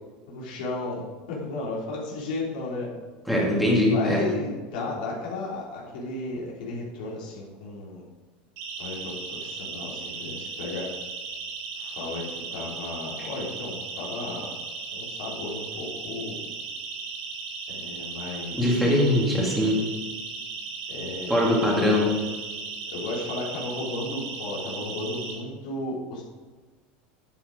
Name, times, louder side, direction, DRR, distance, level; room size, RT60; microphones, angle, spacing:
voice 1, 0.3-2.9 3.8-8.0 8.8-10.9 11.8-14.5 14.9-16.4 17.7-18.7 20.9-22.1 22.9-26.2, left 2 dB, 85° left, -4 dB, 3.2 m, -34 dB
voice 2, 3.3-4.3 18.6-19.8 21.3-22.1, left 1 dB, ahead, -3 dB, 2.3 m, -22 dB
Siren, 8.6-25.3, right 4 dB, 60° right, 3.4 m, -36 dB
9.9 x 7.7 x 5.1 m, 1.3 s
supercardioid pair, 155°, 5 cm